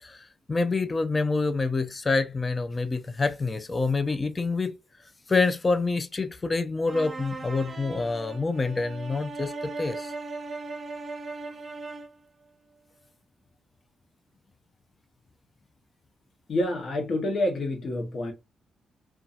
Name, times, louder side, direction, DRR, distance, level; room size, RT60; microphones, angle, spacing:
voice 1, 0.0-4.7 5.3-10.1, left 3 dB, 35° left, 0.5 m, -27 dB
sound 1, 6.9-12.2, right 3 dB, 40° right, 0.7 m, -38 dB
voice 2, 16.5-18.3, left 1 dB, 60° left, 0.8 m, -27 dB
2.6 x 2.3 x 2.3 m
supercardioid pair, 55°, 0 cm